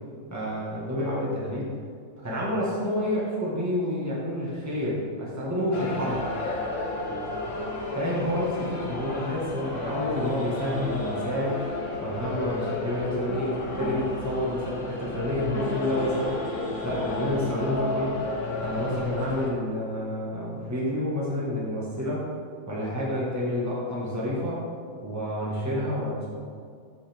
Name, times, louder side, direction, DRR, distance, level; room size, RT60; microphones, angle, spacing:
voice 1, 0.3-1.7 2.2-6.2 7.9-11.6 12.0-16.4 16.8-18.2 18.6-22.3 22.7-24.6 25.0-26.3, left 1 dB, 10° right, -7 dB, 1.7 m, -29 dB
sound 1, 5.7-19.5, left 2 dB, 65° left, 1.5 m, -32 dB
14.0 x 5.5 x 3.6 m, 2.2 s
omnidirectional pair, 1.4 m